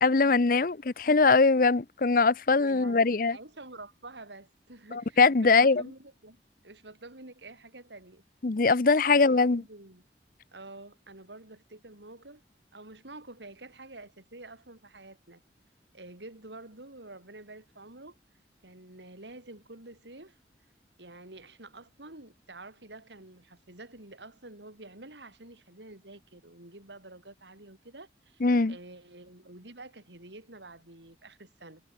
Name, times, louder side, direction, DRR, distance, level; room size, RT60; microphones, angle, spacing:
voice 1, 0.0-3.4 4.9-5.8 8.4-9.6 28.4-28.8, left 4 dB, 50° left, 0.7 m, -22 dB
voice 2, 2.6-8.2 9.0-10.0 10.5-12.4 12.7-15.4 15.9-18.2 18.6-20.4 21.0-28.4 28.7-31.8, right 2 dB, 85° right, 4.9 m, -48 dB
head